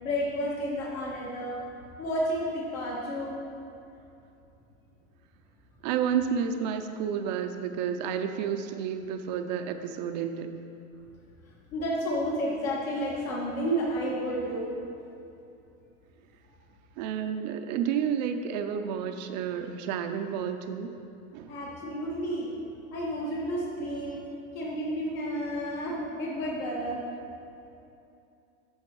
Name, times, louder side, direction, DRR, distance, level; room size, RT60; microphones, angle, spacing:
voice 1, 0.0-1.6 2.0-3.4 11.7-14.8 21.5-22.6 22.9-24.2 24.5-27.0, equal, 70° left, -4 dB, 1.9 m, -31 dB
voice 2, 5.8-10.6 17.0-20.9 21.3-21.5, right 7 dB, 35° right, 7 dB, 0.4 m, -30 dB
8.5 x 6.4 x 4.6 m, 2.7 s
hypercardioid pair, 135°, 43 cm